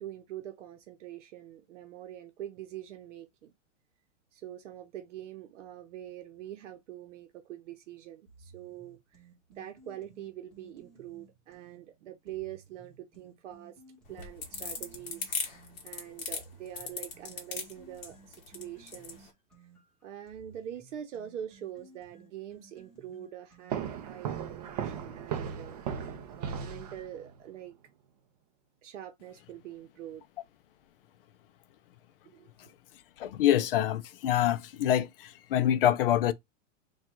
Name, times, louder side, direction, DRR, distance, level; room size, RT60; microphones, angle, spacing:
voice 1, 0.0-3.5 4.3-9.2 9.5-13.8 14.1-19.3 20.0-27.7 28.8-30.2 32.2-32.7, right 11 dB, 70° right, 0.9 m, -44 dB
sound 1, 8.3-11.8 12.3-15.8 16.3-24.1, right 3 dB, ahead, 1.2 m, -58 dB
sound 2, 14.1-19.2, left 5 dB, 20° left, 0.9 m, -37 dB
sound 3, 23.7-27.4, right 8 dB, 35° right, 0.5 m, -36 dB
voice 2, 33.2-36.3, left 11 dB, 50° left, 0.4 m, -26 dB
3.6 x 2.4 x 4.3 m
supercardioid pair, 170°, 37 cm